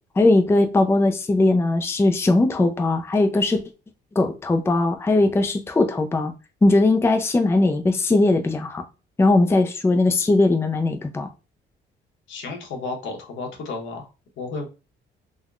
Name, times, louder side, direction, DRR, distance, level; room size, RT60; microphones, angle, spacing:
voice 1, 0.2-3.6 4.2-6.3 6.6-8.9 9.2-11.3, left 2 dB, 10° left, 0.4 m, -19 dB
voice 2, 12.3-14.1 14.4-14.7, left 3 dB, 75° left, 1.0 m, -32 dB
3.5 x 2.2 x 2.3 m
cardioid pair, 90°, 20 cm